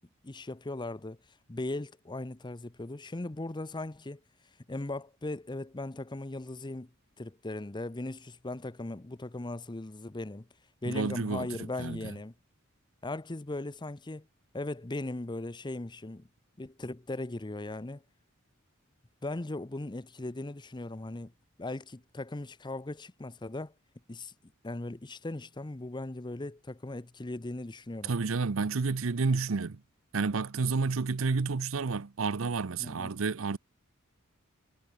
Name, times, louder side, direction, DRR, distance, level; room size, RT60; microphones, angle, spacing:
voice 1, 0.2-1.2 1.5-4.2 4.7-6.9 7.2-10.5 10.8-12.3 13.0-14.3 14.5-16.3 16.6-18.0 19.2-21.3 21.6-23.7 24.1-24.3 24.6-28.1 32.8-33.1, left 2 dB, 20° left, 0.7 m, -38 dB
voice 2, 10.9-11.5 11.8-12.1 28.0-29.8 30.1-33.6, right 4 dB, 70° right, 0.7 m, -30 dB
head